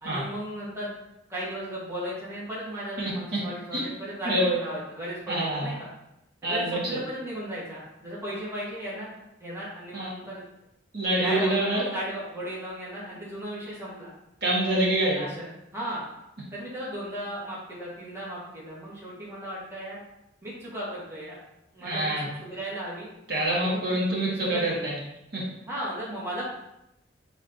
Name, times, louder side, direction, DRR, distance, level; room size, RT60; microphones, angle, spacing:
voice 1, 0.0-0.9 1.3-5.9 6.4-10.4 11.2-14.1 15.2-15.5 15.7-16.1 16.5-20.0 20.4-21.4 21.7-22.1 22.4-23.1 23.5-23.8 24.3-24.8 25.7-26.5, equal, 15° right, -8 dB, 1.2 m, -35 dB
voice 2, 3.0-3.4 3.7-3.8 4.2-4.5 5.3-5.7 6.4-6.8 9.9-10.1 10.9-11.8 14.4-15.2 21.8-22.3 23.3-25.0 25.3-25.4, right 1 dB, 55° right, -6 dB, 1.5 m, -26 dB
6.0 x 3.3 x 2.6 m, 0.86 s
head